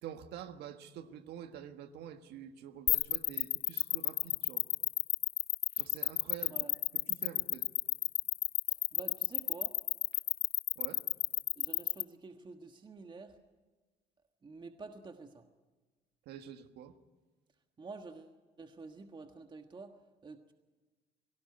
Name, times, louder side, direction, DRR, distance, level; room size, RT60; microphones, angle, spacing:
voice 1, 0.0-4.7 5.8-6.6 6.9-7.7 10.7-11.1 16.2-17.0, right 9 dB, 80° right, 1.6 m, -47 dB
sound 1, 2.9-12.0, left 14 dB, 65° left, 0.7 m, -30 dB
voice 2, 8.7-9.8 11.5-13.4 14.4-15.5 17.8-20.0 20.2-20.5, right 4 dB, 25° right, 1.4 m, -49 dB
23.0 x 18.0 x 9.7 m
cardioid pair, 110°, 17 cm